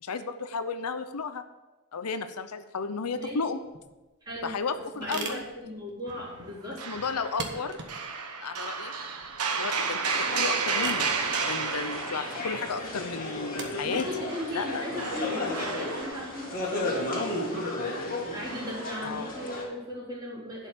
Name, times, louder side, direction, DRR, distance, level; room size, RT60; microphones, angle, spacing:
voice 1, 0.0-1.4 1.9-3.6 4.4-5.4 6.9-7.8 8.4-8.9 9.5-11.1 11.4-14.1 14.5-14.9 19.0-19.3, left 4 dB, 85° left, 10 dB, 0.7 m, -33 dB
sound 1, 3.6-16.0, right 4 dB, 55° right, 1.5 m, -43 dB
voice 2, 4.2-6.8 13.8-17.7 18.3-20.7, left 1 dB, 20° right, -7 dB, 3.9 m, -37 dB
sound 2, 6.1-6.5 6.8-13.2 14.3-17.4 18.5-18.9, right 5 dB, 80° right, 1.2 m, -33 dB
sound 3, 10.1-19.6, left 2 dB, 40° left, 2.4 m, -34 dB
11.0 x 5.6 x 6.6 m, 1.1 s
head